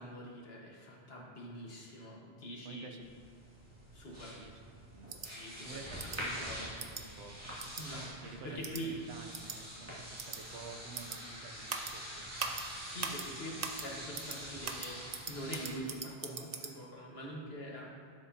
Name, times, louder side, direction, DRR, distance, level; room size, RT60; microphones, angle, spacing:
voice 1, 0.0-3.0 3.9-4.4 5.2-6.7 7.8-9.0 12.6-17.9, equal, 70° left, -3 dB, 1.6 m, -45 dB
voice 2, 2.6-3.0 4.3-5.2 5.6-7.7 8.2-12.6, right 4 dB, 90° right, 5 dB, 1.0 m, -51 dB
sound 1, 3.0-15.8, equal, 15° right, 2.1 m, -46 dB
sound 2, 5.1-5.3 6.0-6.2 6.8-7.0 7.6-7.8 8.6-8.8 9.3-9.6 10.2-10.4 10.9-11.2 11.7-11.9 12.4-12.6 13.0-13.2 13.6-13.8 14.1-14.4 14.6-16.7, right 5 dB, 45° right, 0.6 m, -40 dB
11.5 x 7.2 x 2.8 m, 2.3 s
omnidirectional pair, 1.1 m